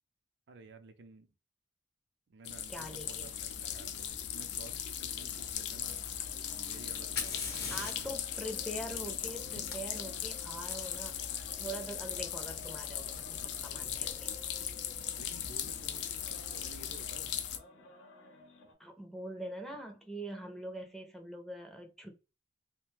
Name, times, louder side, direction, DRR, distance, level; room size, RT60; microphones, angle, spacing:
voice 1, 0.5-1.3 2.3-6.1 6.6-8.2 15.2-17.3, right 3 dB, 70° right, 0.4 m, -54 dB
sound 1, 2.4-17.6, left 9 dB, 70° left, 0.4 m, -39 dB
voice 2, 2.7-3.3 7.7-11.2 11.6-14.3 18.8-22.1, right 1 dB, ahead, 0.5 m, -43 dB
sound 2, 5.9-18.7, left 2 dB, 90° left, 0.8 m, -56 dB
Fire, 6.9-10.7 12.6-12.7 13.6-14.0, left 5 dB, 55° left, 0.7 m, -42 dB
2.4 x 2.1 x 3.1 m
head